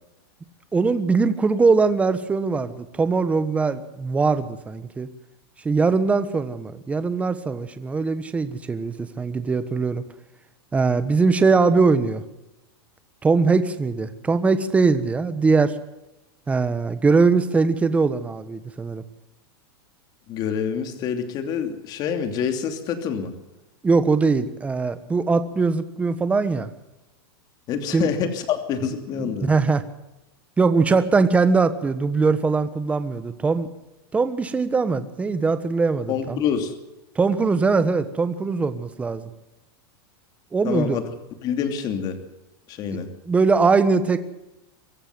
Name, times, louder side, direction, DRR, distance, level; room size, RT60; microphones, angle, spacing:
voice 1, 0.7-5.1 5.6-10.0 10.7-12.2 13.2-15.8 16.5-19.0 23.8-26.7 27.9-28.1 29.2-29.8 30.6-33.7 34.1-36.4 37.1-39.3 40.5-41.0 43.3-44.2, right 4 dB, 10° right, 11 dB, 1.4 m, -21 dB
voice 2, 20.3-23.3 27.7-29.5 36.1-36.8 40.6-41.0 41.4-42.2 42.7-43.1, left 7 dB, 30° left, 7 dB, 2.8 m, -26 dB
24.5 x 14.0 x 7.7 m, 0.95 s
supercardioid pair, 155°, 13 cm